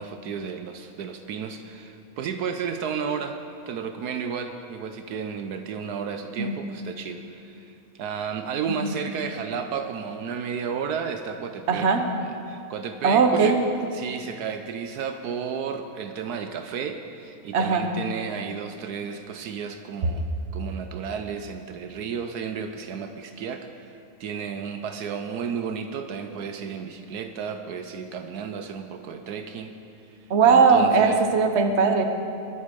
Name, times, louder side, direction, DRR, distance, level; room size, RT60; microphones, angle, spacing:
voice 1, 0.0-3.4 3.7-11.9 12.2-13.6 13.9-23.9 24.2-29.8 30.1-31.2, right 6 dB, 75° right, 7 dB, 1.2 m, -33 dB
voice 2, 11.7-12.0 13.0-13.5 17.5-17.9 30.3-32.0, right 5 dB, 45° right, 5 dB, 1.2 m, -19 dB
22.0 x 8.3 x 5.3 m, 2.6 s
omnidirectional pair, 1.7 m